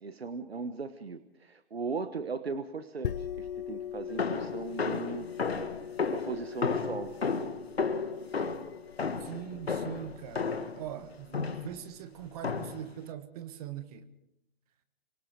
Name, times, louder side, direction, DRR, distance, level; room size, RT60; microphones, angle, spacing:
voice 1, 0.0-5.3 6.1-7.1, right 4 dB, 90° right, 1.3 m, -38 dB
sound 1, 3.0-12.4, left 9 dB, 60° left, 0.9 m, -42 dB
sound 2, 4.2-10.8 11.3-11.8 12.4-12.9, left 4 dB, 85° left, 1.9 m, -33 dB
voice 2, 9.2-14.1, right 11 dB, 40° right, 1.5 m, -42 dB
26.5 x 23.5 x 4.8 m
hypercardioid pair, 135°, 30 cm